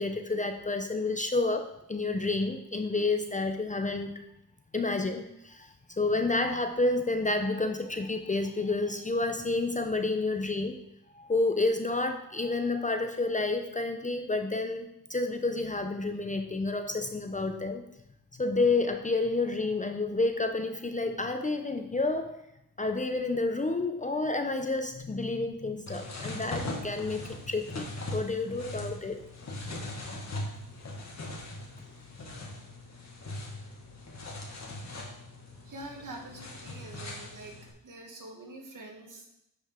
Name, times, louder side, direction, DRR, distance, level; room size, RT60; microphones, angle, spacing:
voice 1, 0.0-4.1 4.7-10.8 11.1-17.8 18.3-22.4 22.8-29.2, left 3 dB, 20° left, 6 dB, 0.7 m, -30 dB
sound 1, 25.9-37.7, left 1 dB, 45° left, 2.1 m, -40 dB
voice 2, 35.6-37.6 37.8-39.3, right 2 dB, 55° right, 0 dB, 2.2 m, -45 dB
10.5 x 5.3 x 3.7 m, 0.80 s
cardioid pair, 90°, 37 cm